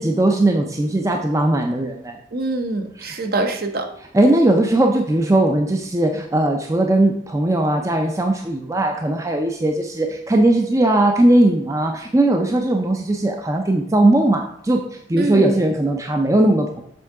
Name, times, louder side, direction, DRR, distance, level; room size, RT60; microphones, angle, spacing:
voice 1, 0.0-2.2 3.0-3.1 4.1-16.8, right 1 dB, 15° right, 3 dB, 0.4 m, -18 dB
voice 2, 2.3-3.9 15.2-15.6, right 2 dB, 50° right, 5 dB, 0.7 m, -24 dB
6.9 x 3.6 x 4.7 m, 0.70 s
head